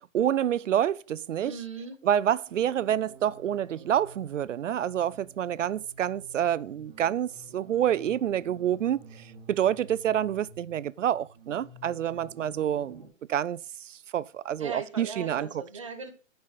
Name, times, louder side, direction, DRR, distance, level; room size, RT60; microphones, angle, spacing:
voice 1, 0.1-1.6 2.0-13.0 13.3-15.6, right 10 dB, 65° right, 0.5 m, -28 dB
voice 2, 1.4-2.0 14.6-16.1, right 4 dB, 25° right, 0.7 m, -38 dB
sound 1, 2.5-13.1, right 3 dB, 5° right, 1.6 m, -51 dB
7.6 x 5.6 x 5.8 m
hypercardioid pair, 180°, 40 cm